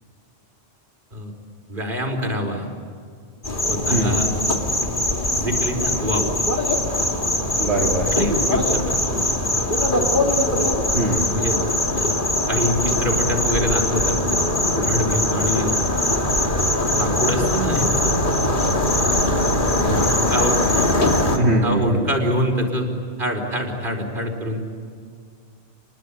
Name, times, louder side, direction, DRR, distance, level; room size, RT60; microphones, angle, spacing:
voice 1, 1.7-2.7 3.7-4.3 5.3-6.3 8.1-9.5 11.3-11.6 11.9-12.1 12.5-14.4 14.7-15.7 16.4-16.5 16.9-18.2 19.8-20.9 21.3-24.6, equal, 50° right, 3 dB, 4.8 m, -25 dB
sound 1, 3.4-21.4, left 1 dB, 45° left, 2.7 m, -21 dB
voice 2, 3.9-4.2 7.6-8.1 10.9-11.3 21.4-22.1, right 1 dB, 75° right, -3 dB, 3.0 m, -21 dB
30.0 x 22.0 x 8.6 m, 2.1 s
omnidirectional pair, 1.1 m